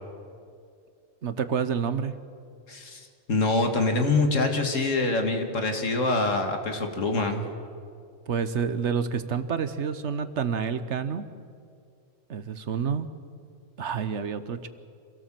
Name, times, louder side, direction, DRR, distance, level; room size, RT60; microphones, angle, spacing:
voice 1, 1.2-2.1 8.3-11.2 12.3-13.1 13.8-14.7, right 6 dB, 65° right, 12 dB, 1.2 m, -28 dB
voice 2, 2.7-7.5, left 2 dB, 75° left, 5 dB, 2.3 m, -25 dB
26.5 x 17.5 x 7.6 m, 2.3 s
omnidirectional pair, 1.3 m